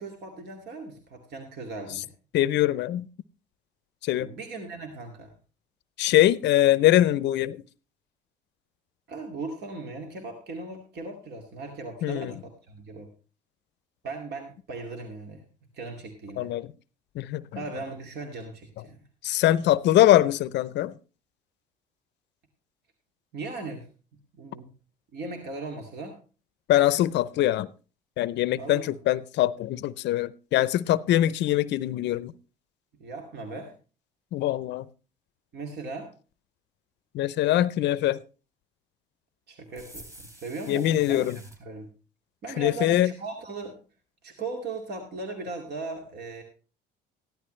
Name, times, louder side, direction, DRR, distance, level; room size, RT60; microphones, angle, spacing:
voice 1, 0.0-2.1 4.2-5.3 9.1-13.1 14.0-15.4 15.7-16.5 17.6-19.0 23.3-23.9 24.3-24.7 25.1-26.2 28.6-29.0 33.0-33.7 35.5-36.1 39.5-41.9 42.4-43.8 44.2-46.4, right 3 dB, 60° right, 2.4 m, -38 dB
voice 2, 2.3-3.1 4.0-4.3 6.0-7.6 12.0-12.3 16.4-16.7 17.2-17.4 19.2-20.9 26.7-27.7 28.2-32.3 34.3-34.9 37.1-38.2 40.7-41.4 42.6-43.1, left 13 dB, 65° left, 0.6 m, -23 dB
sound 1, 39.7-41.6, right 1 dB, 15° right, 3.4 m, -48 dB
14.5 x 11.5 x 3.2 m
supercardioid pair, 80°, 20 cm